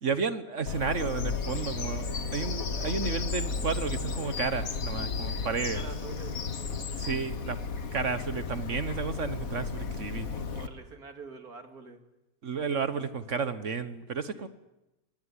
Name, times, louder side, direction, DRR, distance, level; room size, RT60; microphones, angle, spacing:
voice 1, 0.0-5.8 7.0-7.6 7.9-10.3 12.4-14.5, right 5 dB, 55° right, 12 dB, 1.6 m, -32 dB
Bird vocalization bird call bird song, 0.7-10.7, left 5 dB, 70° left, 1.9 m, -34 dB
voice 2, 5.5-6.4 10.3-12.0 14.3-14.5, right 4 dB, 90° right, 6 dB, 3.2 m, -45 dB
26.0 x 20.0 x 10.0 m, 0.97 s
omnidirectional pair, 1.5 m